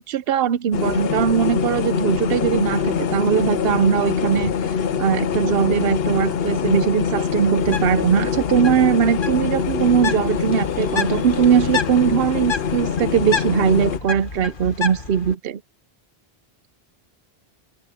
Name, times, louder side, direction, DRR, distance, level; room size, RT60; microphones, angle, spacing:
voice 1, 0.0-4.5 5.0-15.6, right 8 dB, 70° right, 0.9 m, -20 dB
sound 1, 0.7-14.0, left 7 dB, 70° left, 1.0 m, -24 dB
Bird, 7.5-15.3, left 5 dB, 55° left, 1.6 m, -31 dB
open air
omnidirectional pair, 1.1 m